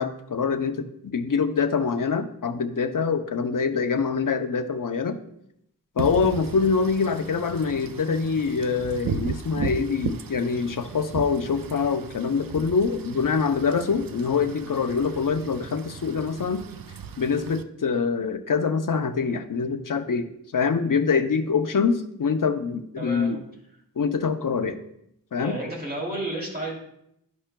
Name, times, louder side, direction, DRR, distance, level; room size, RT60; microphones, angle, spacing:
voice 1, 0.0-5.2 6.0-16.7 17.2-20.3 20.5-23.4 24.0-24.8 25.3-25.6, left 5 dB, 60° left, 8 dB, 0.6 m, -25 dB
Wind / Rain, 6.0-17.6, right 7 dB, 70° right, 0.5 m, -36 dB
voice 2, 23.0-23.3 25.4-26.7, right 1 dB, 25° right, -4 dB, 2.8 m, -31 dB
11.5 x 5.5 x 2.2 m, 0.76 s
wide cardioid pair, 75°, 36 cm